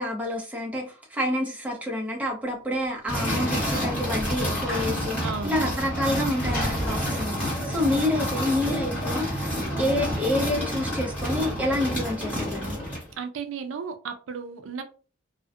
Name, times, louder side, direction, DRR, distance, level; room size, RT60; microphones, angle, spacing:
voice 1, 0.0-5.2 5.4-12.8, left 1 dB, 10° right, 0.5 m, -28 dB
Sliding door / Slam, 2.8-8.6, equal, 45° left, 0.9 m, -39 dB
sound 1, 3.1-13.1, equal, 10° left, 1.1 m, -29 dB
Clapping, 4.7-5.4, equal, 75° left, 0.9 m, -39 dB
voice 2, 5.2-5.6 13.2-14.8, right 5 dB, 85° right, 0.4 m, -34 dB
2.3 x 2.1 x 2.5 m
head